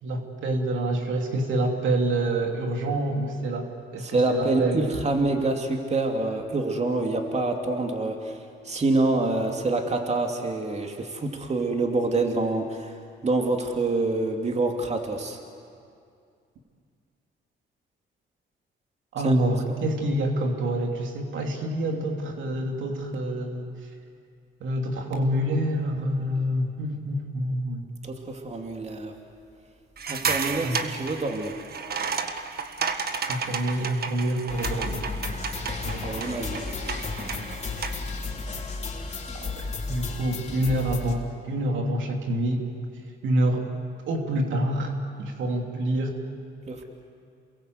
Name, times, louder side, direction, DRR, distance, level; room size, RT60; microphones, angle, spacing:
voice 1, 0.0-4.9 19.1-23.7 24.6-27.8 30.6-30.8 33.3-35.1 35.8-36.3 39.4-42.7 43.2-43.7 44.1-46.2, right 1 dB, 75° right, 2 dB, 3.0 m, -27 dB
voice 2, 4.0-15.4 19.2-19.4 28.0-29.1 30.1-31.6 36.0-36.6 46.7-46.8, right 2 dB, 35° right, 3 dB, 2.8 m, -26 dB
sound 1, 30.0-38.1, right 5 dB, 50° right, 1.8 m, -32 dB
sound 2, 34.5-41.1, left 4 dB, 35° left, 3.6 m, -33 dB
28.5 x 22.0 x 8.0 m, 2.4 s
cardioid pair, 90°, 20 cm